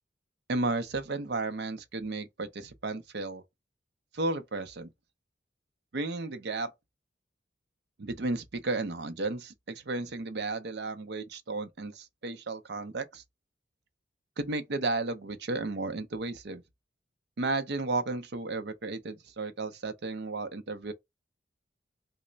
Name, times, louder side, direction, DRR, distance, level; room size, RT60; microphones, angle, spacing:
voice 1, 0.5-3.4 4.1-4.9 5.9-6.7 8.0-13.2 14.4-16.6 17.4-20.9, right 3 dB, 60° right, 0.5 m, -33 dB
3.1 x 2.1 x 3.8 m
head